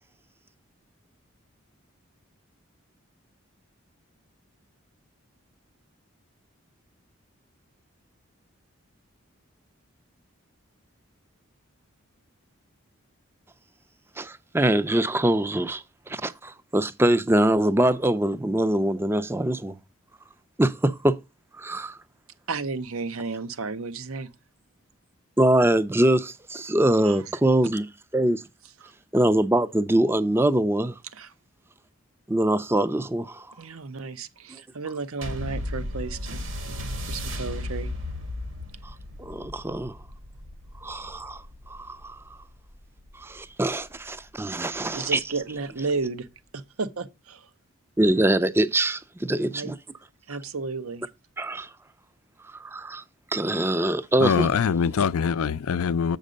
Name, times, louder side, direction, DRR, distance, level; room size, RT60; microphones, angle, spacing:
voice 1, 14.2-19.8 20.6-21.2 21.6-22.0 25.4-27.9 28.1-28.4 29.1-31.0 32.3-33.5 39.2-40.0 40.8-42.2 43.1-45.2 48.0-49.8 51.4-51.7 52.4-53.0 53.3-54.5, right 1 dB, 10° right, 0.4 m, -23 dB
voice 2, 22.5-24.3 27.0-27.2 28.8-28.9 31.1-31.3 33.6-37.9 44.9-46.3 46.5-47.5 49.5-49.7 50.3-51.1, right 4 dB, 85° right, 0.8 m, -33 dB
sound 1, 35.2-44.0 44.7-44.8, left 1 dB, 70° right, 1.9 m, -35 dB
voice 3, 54.2-56.2, left 6 dB, 85° left, 0.4 m, -23 dB
7.5 x 5.3 x 5.1 m
head